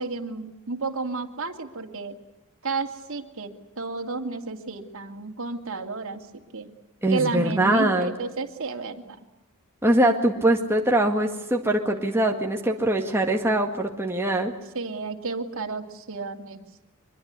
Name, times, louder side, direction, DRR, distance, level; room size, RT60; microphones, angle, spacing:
voice 1, 0.0-2.2 2.6-6.2 6.5-6.7 7.1-9.2 14.7-16.6, right 3 dB, 65° right, 4 dB, 2.6 m, -32 dB
voice 2, 7.0-8.1 9.8-14.5, right 1 dB, 10° right, 2 dB, 1.9 m, -22 dB
24.5 x 23.0 x 9.6 m, 0.98 s
head